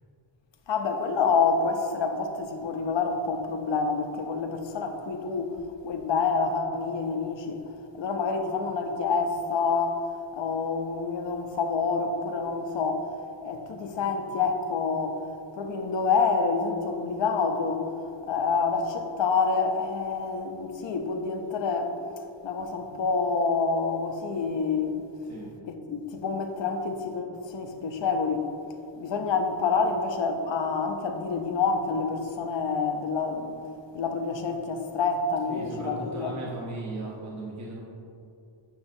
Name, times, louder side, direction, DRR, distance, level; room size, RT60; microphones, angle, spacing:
voice 1, 0.7-7.6 7.9-22.0 22.4-25.0 25.7-28.5 29.0-33.5 33.9-36.3, left 4 dB, 65° left, 0.7 m, -27 dB
voice 2, 35.5-37.8, right 2 dB, 35° right, 0.9 m, -37 dB
8.6 x 6.2 x 2.6 m
wide cardioid pair, 160°, 48 cm